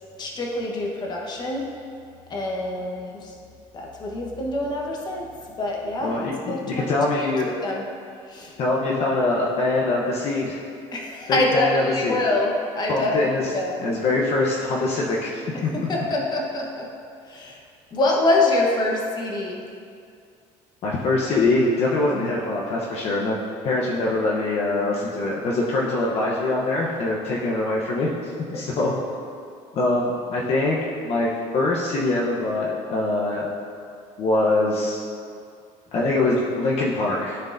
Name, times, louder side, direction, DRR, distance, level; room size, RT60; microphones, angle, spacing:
voice 1, 0.2-1.7 2.3-3.3 3.7-5.3 5.6-6.1 6.5-7.3 7.6-7.8 8.3-8.5 10.9-13.8 15.7-16.9 17.3-17.6 17.9-19.6 22.1-22.3 28.5-28.9, left 2 dB, 30° left, -1 dB, 1.1 m, -25 dB
voice 2, 6.0-7.5 8.6-10.6 11.3-12.2 12.9-13.5 13.8-16.1 20.8-23.4 23.6-28.9 29.7-33.5 34.2-35.0 35.9-37.4, left 2 dB, 50° left, -3 dB, 0.9 m, -23 dB
13.0 x 4.5 x 2.6 m, 2.3 s
cardioid pair, 130°, 13 cm